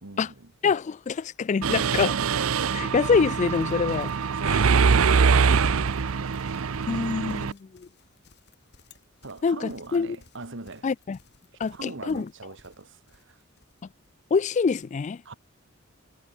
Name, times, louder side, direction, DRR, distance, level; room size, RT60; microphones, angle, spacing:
voice 1, 0.0-0.5 4.4-6.8 9.2-10.9 11.7-13.4 15.3-15.4, right 2 dB, 60° right, 1.9 m, -41 dB
voice 2, 0.6-2.2 2.7-4.1 4.5-4.6 6.9-7.9 9.4-10.2 10.8-11.2 11.6-12.3 14.3-15.2, left 5 dB, 35° left, 0.3 m, -25 dB
Mechanisms, 1.6-7.5, right 5 dB, 80° right, 0.6 m, -23 dB
Livestock farm animals working animals, 3.0-14.2, left 3 dB, 55° left, 4.8 m, -59 dB
head